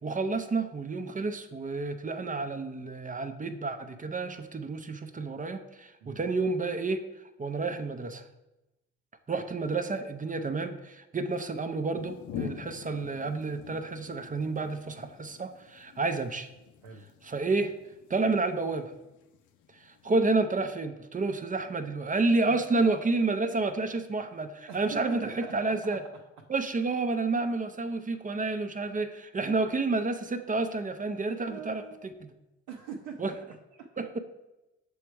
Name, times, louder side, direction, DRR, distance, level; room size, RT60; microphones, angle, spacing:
voice 1, 0.0-7.0 7.4-8.2 9.3-16.5 17.2-17.7 18.1-18.9 19.7-26.0 26.5-31.8 33.2-33.3 34.0-34.2, right 3 dB, 25° right, 8 dB, 0.6 m, -30 dB
sound 1, 12.0-20.4, left 9 dB, 60° left, 0.7 m, -46 dB
voice 2, 24.7-26.0 31.5-32.1 32.7-34.0, right 6 dB, 70° right, -1 dB, 0.7 m, -43 dB
7.0 x 3.4 x 4.6 m, 0.97 s
hypercardioid pair, 50°, 34 cm